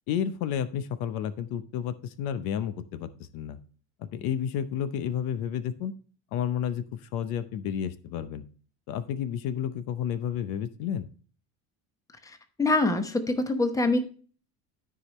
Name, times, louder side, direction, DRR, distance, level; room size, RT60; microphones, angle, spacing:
voice 1, 0.1-3.6 4.0-5.9 6.3-8.4 8.9-11.1, left 9 dB, 70° left, 13 dB, 0.8 m, -31 dB
voice 2, 12.3-14.0, left 2 dB, 10° left, 8 dB, 0.9 m, -25 dB
13.0 x 5.0 x 3.1 m, 0.40 s
cardioid pair, 140°, 36 cm